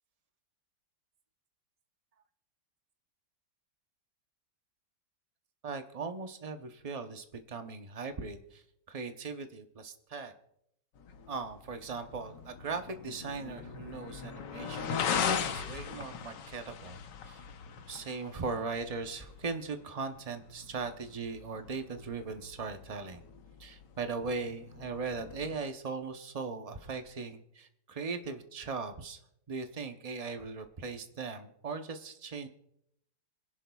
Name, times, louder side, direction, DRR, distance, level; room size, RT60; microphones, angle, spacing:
voice 1, 5.6-10.3 11.3-17.0 17.3-17.4 17.9-23.2 23.6-29.2 29.5-32.5, right 4 dB, 50° right, 7 dB, 0.4 m, -39 dB
sound 1, 11.0-25.6, left 7 dB, 80° left, 1.6 m, -40 dB
26.5 x 11.0 x 2.3 m, 0.75 s
omnidirectional pair, 1.9 m